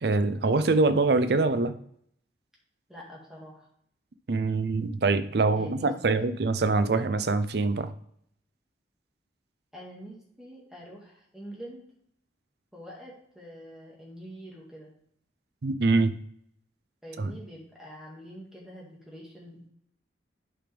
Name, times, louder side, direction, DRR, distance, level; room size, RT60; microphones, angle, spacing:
voice 1, 0.0-1.8 4.3-7.9 15.6-16.2 17.2-17.3, right 3 dB, 60° right, 12 dB, 0.5 m, -24 dB
voice 2, 2.9-3.7 5.6-6.2 9.7-11.8 12.7-14.9 17.0-19.7, equal, 5° right, -4 dB, 2.0 m, -45 dB
8.8 x 5.1 x 3.5 m, 0.68 s
head